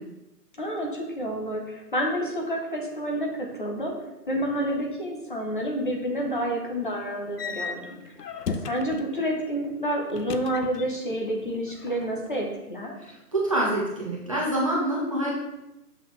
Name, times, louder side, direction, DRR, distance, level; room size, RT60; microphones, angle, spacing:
voice 1, 0.6-3.9 4.3-8.1 8.5-12.9, equal, 30° left, 0 dB, 1.0 m, -29 dB
sound 1, 7.4-9.1 10.1-11.2 11.5-12.3, left 5 dB, 80° left, 0.7 m, -35 dB
voice 2, 13.0-15.3, right 1 dB, 20° right, -5 dB, 0.9 m, -26 dB
6.6 x 6.2 x 3.2 m, 0.94 s
hypercardioid pair, 170°, 47 cm